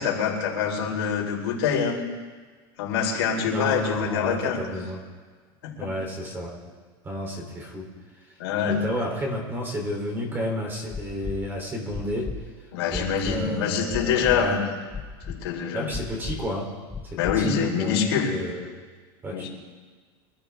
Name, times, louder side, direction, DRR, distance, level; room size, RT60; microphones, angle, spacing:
voice 1, 0.0-2.0 2.8-4.6 5.6-5.9 8.4-8.8 12.7-14.6 15.3-15.9 17.2-18.3 19.3-19.5, left 7 dB, 85° left, -2 dB, 4.5 m, -25 dB
voice 2, 3.4-5.0 5.8-6.7 7.0-7.9 8.7-12.3 12.9-14.6 15.7-16.7 17.0-18.0 18.3-18.8 19.2-19.5, equal, 15° right, 1 dB, 3.4 m, -31 dB
sound 1, 10.9-11.4 11.9-12.4 12.9-13.4 13.9-14.4 14.9-15.4 15.9-16.4 16.9-17.4 17.9-18.0, left 5 dB, 10° left, 1.2 m, -33 dB
25.0 x 13.5 x 3.6 m, 1.5 s
supercardioid pair, 155°, 13 cm